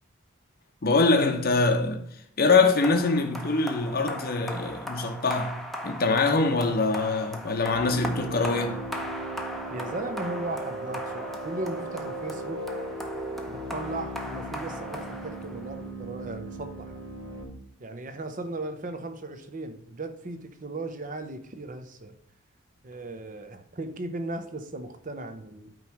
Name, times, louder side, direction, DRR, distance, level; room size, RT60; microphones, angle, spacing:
voice 1, 0.8-2.0 2.4-8.8, left 3 dB, 45° left, 0.7 m, -24 dB
sound 1, 2.8-15.9, equal, ahead, 0.7 m, -39 dB
sound 2, 7.7-17.4, right 1 dB, 25° right, 2.0 m, -37 dB
voice 2, 9.7-12.6 13.5-17.0 17.8-22.1 22.8-25.7, right 2 dB, 40° right, 0.7 m, -37 dB
8.9 x 3.1 x 5.7 m
head